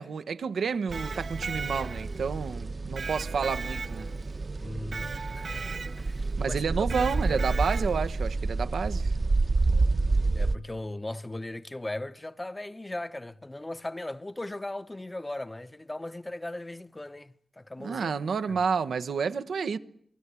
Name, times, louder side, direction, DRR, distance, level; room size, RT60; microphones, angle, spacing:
voice 1, 0.0-4.1 6.4-9.1 17.8-19.8, right 6 dB, 90° right, 1.1 m, -30 dB
Electric guitar, 0.7-2.3 3.0-4.3 4.9-6.2 6.9-8.1, right 4 dB, 65° right, 2.1 m, -38 dB
sound 1, 0.9-10.5, right 3 dB, 50° right, 1.1 m, -29 dB
voice 2, 4.6-5.7 6.0-6.6 6.9-7.4 10.3-18.1 18.5-18.6, left 1 dB, 20° left, 1.0 m, -38 dB
28.0 x 20.0 x 8.4 m
cardioid pair, 70°, 0 cm